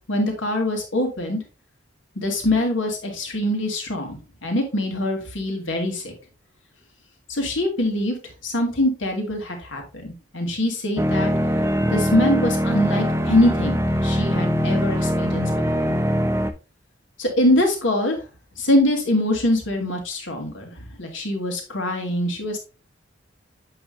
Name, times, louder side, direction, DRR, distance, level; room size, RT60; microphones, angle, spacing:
voice 1, 0.1-1.4 2.2-6.1 7.3-8.2 8.4-11.3 11.9-15.5 15.7-15.9 17.2-18.2 18.6-22.6, left 1 dB, 80° left, 3 dB, 2.3 m, -23 dB
sound 1, 11.0-16.5, equal, 15° right, 0.6 m, -22 dB
7.8 x 5.8 x 2.7 m, 0.31 s
head